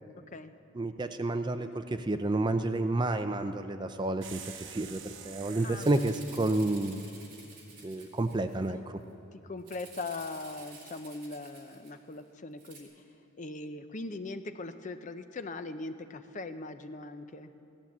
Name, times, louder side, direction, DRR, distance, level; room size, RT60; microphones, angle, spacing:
voice 1, 0.8-7.0 7.8-9.0, right 2 dB, 20° right, 9 dB, 0.4 m, -30 dB
sound 1, 4.2-6.1, right 8 dB, 60° right, 1.0 m, -46 dB
Rattle (instrument), 4.8-5.0 5.3-5.4 5.7-8.7 9.6-12.2 12.6-12.8, right 4 dB, 40° right, 2.7 m, -51 dB
voice 2, 5.6-6.2 8.7-8.8 9.3-13.0 13.4-17.5, left 3 dB, 35° left, 9 dB, 0.5 m, -40 dB
16.0 x 11.5 x 7.3 m, 2.8 s
head